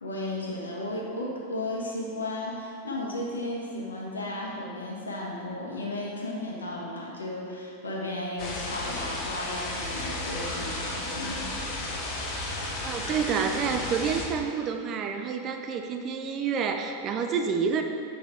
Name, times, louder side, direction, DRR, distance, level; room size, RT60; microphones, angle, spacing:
voice 1, 0.0-11.6, left 1 dB, 75° left, -3 dB, 1.2 m, -34 dB
sound 1, 8.4-14.3, left 2 dB, 40° left, 1.2 m, -33 dB
voice 2, 12.8-17.8, right 6 dB, 30° right, 5 dB, 0.4 m, -28 dB
8.1 x 5.0 x 3.4 m, 2.5 s
figure-of-eight pair, 90°, 0 cm